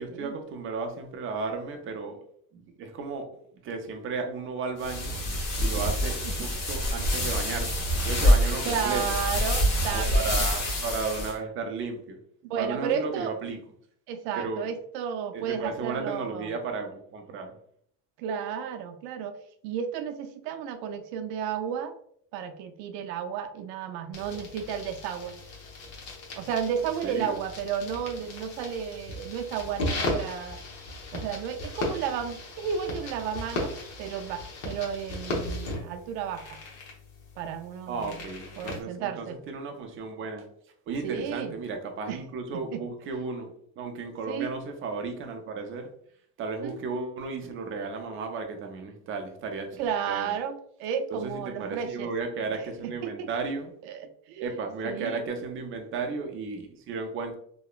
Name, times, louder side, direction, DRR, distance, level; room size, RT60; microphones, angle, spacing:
voice 1, 0.0-2.2 2.5-3.3 3.6-9.0 9.9-12.2 12.6-13.6 14.3-14.7 15.3-17.6 27.0-27.4 37.9-40.4 40.9-43.5 43.8-45.9 46.4-50.3 51.1-53.7 54.4-57.3, right 4 dB, 30° right, 5 dB, 0.4 m, -34 dB
sound 1, 4.8-11.3, equal, 35° left, 1.0 m, -26 dB
voice 2, 8.6-10.5 12.4-13.3 14.1-16.5 18.2-19.4 19.6-22.0 22.3-25.4 26.4-30.6 31.1-36.5 37.4-38.2 38.6-39.4 41.0-41.5 42.1-42.2 42.5-42.8 44.3-44.6 46.6-46.8 49.8-52.1 52.8-53.3 53.8-54.5 54.8-55.2, right 8 dB, 80° right, 7 dB, 0.5 m, -33 dB
sound 2, 24.1-38.8, left 2 dB, 65° left, 1.0 m, -37 dB
2.9 x 2.1 x 2.3 m, 0.63 s
supercardioid pair, 110°, 49 cm